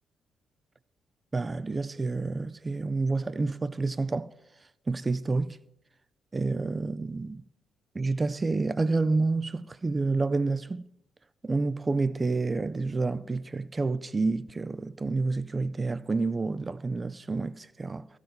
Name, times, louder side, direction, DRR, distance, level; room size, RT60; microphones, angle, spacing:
voice 1, 1.3-4.3 4.9-5.6 6.3-7.4 7.9-10.8 11.4-18.1, right 3 dB, 30° right, 0.5 m, -29 dB
14.5 x 4.9 x 7.8 m
hypercardioid pair, 40°, 0 cm